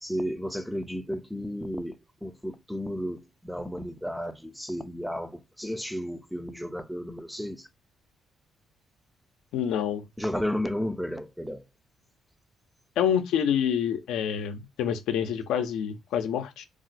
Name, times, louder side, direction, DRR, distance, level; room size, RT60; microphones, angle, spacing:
voice 1, 0.0-7.7 10.2-11.7, equal, ahead, 0.4 m, -33 dB
voice 2, 9.5-10.0 13.0-16.7, left 8 dB, 85° left, 0.5 m, -27 dB
2.4 x 2.1 x 3.9 m
cardioid pair, 90°, 0 cm